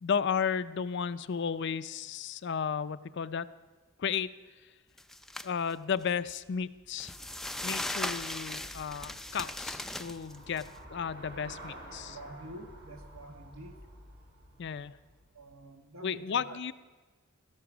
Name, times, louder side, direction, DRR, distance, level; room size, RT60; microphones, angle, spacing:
voice 1, 0.0-3.5 4.0-4.3 5.4-7.1 7.6-12.2 14.6-14.9 16.0-16.7, left 6 dB, 60° left, 14 dB, 0.5 m, -33 dB
sound 1, 5.0-5.5 5.9-6.0 7.0-10.7, left 1 dB, ahead, 0.4 m, -38 dB
Traffic noise roadway noise / Bicycle, 6.5-15.6, right 1 dB, 60° right, 3.9 m, -51 dB
voice 2, 12.0-13.8 15.3-16.6, right 1 dB, 80° right, 5 dB, 1.4 m, -47 dB
16.0 x 13.0 x 6.1 m, 1.3 s
head